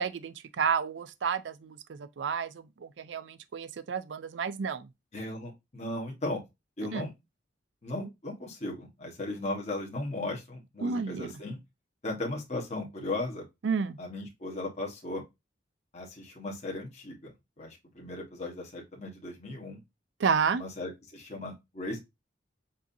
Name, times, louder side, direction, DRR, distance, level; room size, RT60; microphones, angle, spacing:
voice 1, 0.0-4.9 6.9-7.1 10.8-11.3 13.6-14.0 20.2-20.6, right 6 dB, 70° right, 0.4 m, -31 dB
voice 2, 5.1-6.4 6.8-7.1 7.8-11.6 12.0-13.4 14.0-15.2 15.9-17.3 17.6-19.8 20.5-22.0, left 2 dB, 40° left, 1.4 m, -36 dB
7.1 x 2.8 x 2.6 m
head